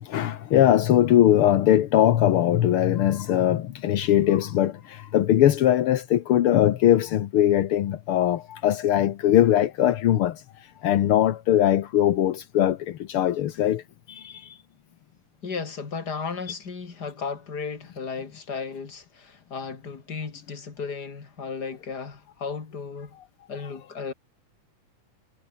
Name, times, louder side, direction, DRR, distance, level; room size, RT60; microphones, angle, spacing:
voice 1, 0.0-10.4 10.8-13.8 14.1-14.6, left 11 dB, 65° left, 1.4 m, -21 dB
voice 2, 15.4-23.1 23.5-24.1, left 5 dB, 30° left, 3.0 m, -34 dB
omnidirectional pair, 3.7 m